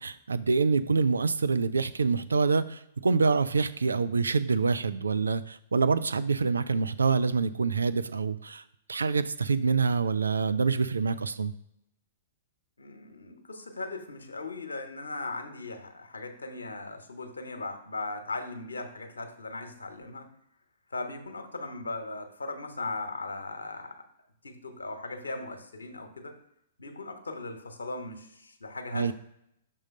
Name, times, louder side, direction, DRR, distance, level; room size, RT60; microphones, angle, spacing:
voice 1, 0.0-8.6 8.9-11.5 28.9-29.1, right 4 dB, 75° right, 12 dB, 0.3 m, -26 dB
voice 2, 12.8-20.3 20.9-23.9 24.4-26.3 26.8-29.1, left 2 dB, 75° left, 6 dB, 1.1 m, -38 dB
6.3 x 3.8 x 5.2 m, 0.76 s
figure-of-eight pair, 110°, 0 cm